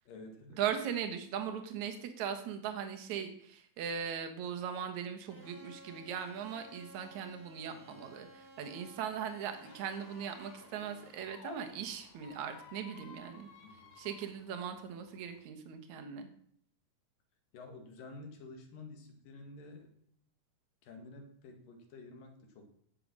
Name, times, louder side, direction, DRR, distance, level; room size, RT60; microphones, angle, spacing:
voice 1, 0.1-0.6 7.7-8.0 13.6-14.0 17.5-19.9 20.8-22.7, left 3 dB, 80° left, 5 dB, 3.6 m, -51 dB
voice 2, 0.6-13.5 14.0-16.3, right 8 dB, 65° right, 6 dB, 2.5 m, -39 dB
sound 1, 5.3-15.4, equal, 5° left, 2.6 m, -58 dB
Squeak, 9.6-11.6 12.1-14.3, left 5 dB, 60° left, 2.6 m, -54 dB
16.0 x 6.8 x 6.2 m, 0.66 s
omnidirectional pair, 3.9 m